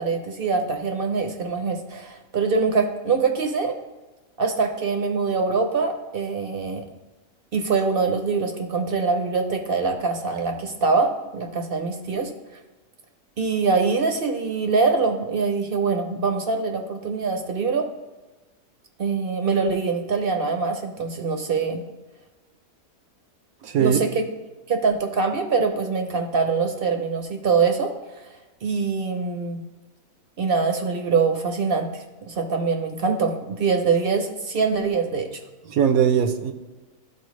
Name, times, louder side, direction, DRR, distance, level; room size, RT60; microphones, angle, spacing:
voice 1, 0.0-3.7 4.4-6.8 7.5-12.3 13.4-17.9 19.0-21.8 23.8-24.3 24.7-28.3 28.6-29.6 30.4-35.4, right 4 dB, 50° right, 4 dB, 0.7 m, -24 dB
voice 2, 23.6-24.0 35.7-36.5, right 8 dB, 75° right, 8 dB, 1.0 m, -20 dB
12.5 x 4.4 x 3.1 m, 1.2 s
omnidirectional pair, 1.6 m